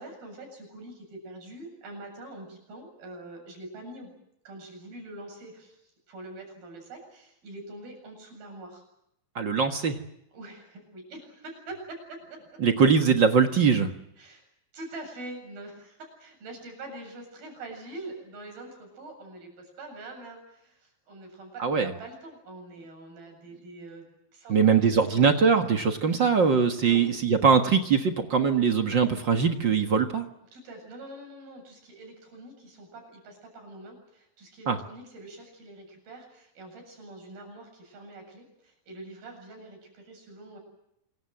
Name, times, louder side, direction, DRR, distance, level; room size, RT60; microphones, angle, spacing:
voice 1, 0.0-4.1 4.4-8.8 10.3-12.4 14.2-14.4 14.7-24.1 24.3-25.5 26.8-27.0 30.5-40.6, right 2 dB, 85° right, 3 dB, 9.5 m, -44 dB
voice 2, 9.3-10.0 12.6-13.9 21.6-21.9 24.5-30.2 34.7-34.8, right 6 dB, 45° right, 5 dB, 1.5 m, -22 dB
27.0 x 23.5 x 7.9 m, 0.77 s
omnidirectional pair, 4.1 m